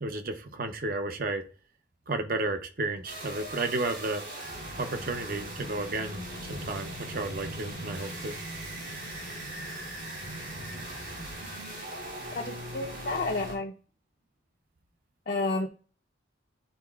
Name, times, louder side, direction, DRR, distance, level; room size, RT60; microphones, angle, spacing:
voice 1, 0.0-1.4 2.1-4.2 4.8-8.4, right 2 dB, 50° right, 7 dB, 0.7 m, -32 dB
sound 1, 3.0-13.5, right 1 dB, 70° right, 2.7 m, -39 dB
voice 2, 12.3-13.7 15.3-15.7, left 2 dB, 50° left, 0 dB, 0.7 m, -30 dB
10.0 x 4.1 x 2.4 m, 0.38 s
head